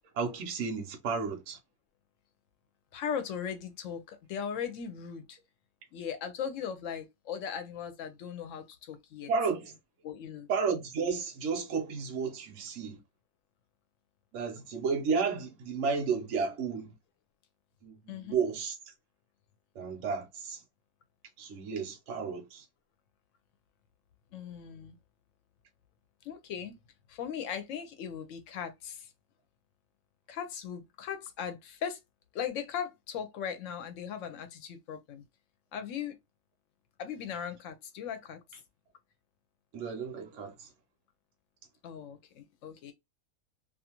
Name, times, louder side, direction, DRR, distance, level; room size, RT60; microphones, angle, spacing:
voice 1, 0.1-1.6 9.3-9.7 10.5-13.0 14.3-16.9 17.8-18.7 19.8-20.6 21.4-22.6 39.7-40.7, right 5 dB, 65° right, 0.9 m, -32 dB
voice 2, 2.9-5.4 5.9-9.3 10.0-10.5 18.1-18.4 24.3-25.0 26.2-26.8 27.1-29.1 30.3-32.0 32.3-35.2 35.7-36.2 37.0-38.4 41.8-42.9, left 8 dB, 70° left, 0.9 m, -38 dB
2.5 x 2.4 x 2.8 m
omnidirectional pair, 1.5 m